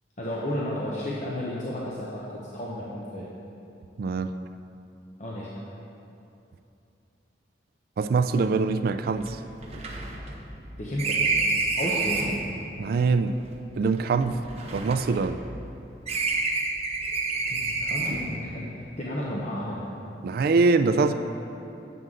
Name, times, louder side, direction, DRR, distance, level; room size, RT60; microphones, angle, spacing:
voice 1, 0.2-3.2 5.2-5.5 10.8-11.4 11.8-12.4 17.5-19.8 21.0-21.1, left 1 dB, 40° left, -6 dB, 0.8 m, -32 dB
voice 2, 4.0-4.3 8.0-9.4 12.8-13.4 13.8-14.4 14.7-15.4 20.2-21.1, right 4 dB, 55° right, 10 dB, 0.3 m, -23 dB
sound 1, 8.4-8.5 8.7-8.8 9.2-12.5 13.3-15.7 16.1-18.4, right 3 dB, 35° right, 0.8 m, -29 dB
7.8 x 7.7 x 3.7 m, 2.8 s
head